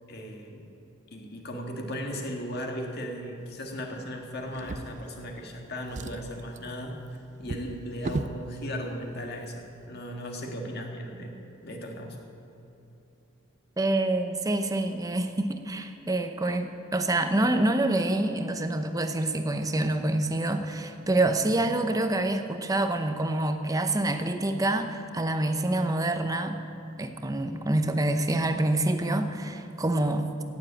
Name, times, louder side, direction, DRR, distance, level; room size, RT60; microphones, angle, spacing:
voice 1, 0.1-0.7 1.1-6.9 7.4-12.2, equal, 50° left, 2 dB, 1.8 m, -37 dB
Drawer open or close, 4.5-5.5 5.8-8.4 9.3-9.5 9.8-9.9, right 3 dB, 35° right, 0.4 m, -37 dB
voice 2, 13.8-26.6 27.0-30.3, right 2 dB, 15° right, 7 dB, 0.8 m, -26 dB
17.0 x 7.5 x 8.7 m, 2.9 s
head